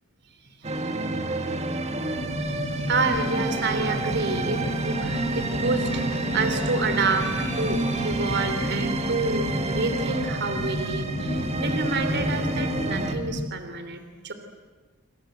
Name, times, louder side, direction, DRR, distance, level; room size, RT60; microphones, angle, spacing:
sound 1, 0.6-13.1, right 2 dB, 30° right, 2.1 m, -29 dB
sound 2, 2.1-13.4, equal, 50° left, 2.5 m, -31 dB
sound 3, 2.3-9.2, left 1 dB, 20° left, 7.0 m, -46 dB
voice 1, 2.9-14.3, right 3 dB, 55° right, 8 dB, 3.1 m, -28 dB
27.0 x 26.5 x 7.9 m, 1.4 s
head